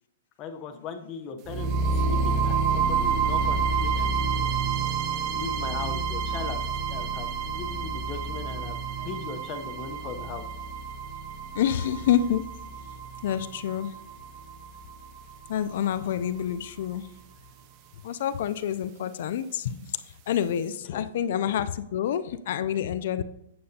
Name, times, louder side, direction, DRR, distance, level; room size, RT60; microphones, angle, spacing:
voice 1, 0.4-4.5 5.3-8.8 9.0-10.5 20.9-21.0, left 6 dB, 30° left, 5 dB, 0.8 m, -38 dB
sound 1, 1.5-15.5, right 5 dB, 35° right, 0.5 m, -29 dB
voice 2, 11.5-12.5 13.2-13.9 15.5-17.1 18.0-23.2, left 9 dB, 60° left, 13 dB, 0.4 m, -28 dB
8.5 x 7.6 x 2.8 m, 0.87 s
hypercardioid pair, 150°, 0 cm